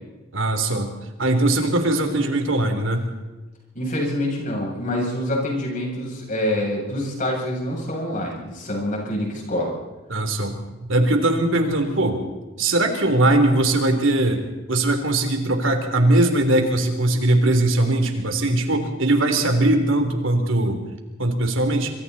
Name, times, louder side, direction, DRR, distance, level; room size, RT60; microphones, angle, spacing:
voice 1, 0.3-0.9 1.2-3.0 10.1-10.5 10.9-12.2 12.6-14.4 14.7-20.8 21.2-21.9, right 2 dB, 70° right, 5 dB, 3.4 m, -20 dB
voice 2, 3.7-9.7, left 1 dB, 40° left, -2 dB, 7.9 m, -26 dB
26.0 x 25.5 x 4.2 m, 1.2 s
head